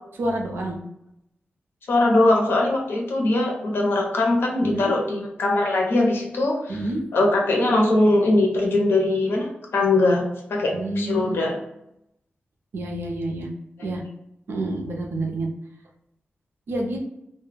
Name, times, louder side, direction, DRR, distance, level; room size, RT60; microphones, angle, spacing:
voice 1, 0.2-0.8 4.6-4.9 6.7-7.0 10.7-11.4 12.7-13.5 13.8-14.0 14.5-15.5 16.7-17.0, right 1 dB, 75° right, 1 dB, 0.5 m, -28 dB
voice 2, 1.9-6.8 7.1-10.2 10.5-11.6, left 2 dB, 80° left, 0 dB, 0.7 m, -21 dB
2.2 x 2.1 x 3.3 m, 0.81 s
wide cardioid pair, 140°, 4 cm